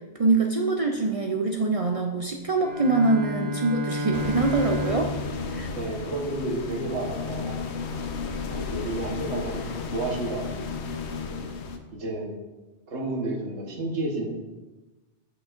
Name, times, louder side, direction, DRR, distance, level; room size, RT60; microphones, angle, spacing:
voice 1, 0.2-5.1 5.5-5.7, right 3 dB, 55° right, 2 dB, 0.3 m, -24 dB
Bowed string instrument, 2.5-6.6, equal, 90° right, 2.1 m, -32 dB
sound 1, 4.1-11.8, left 4 dB, 70° left, 0.9 m, -33 dB
voice 2, 5.7-7.7 8.5-10.9 11.3-11.4 11.9-12.3 12.9-14.3, right 2 dB, 75° right, -1 dB, 1.5 m, -31 dB
9.7 x 5.8 x 2.5 m, 1.2 s
omnidirectional pair, 1.2 m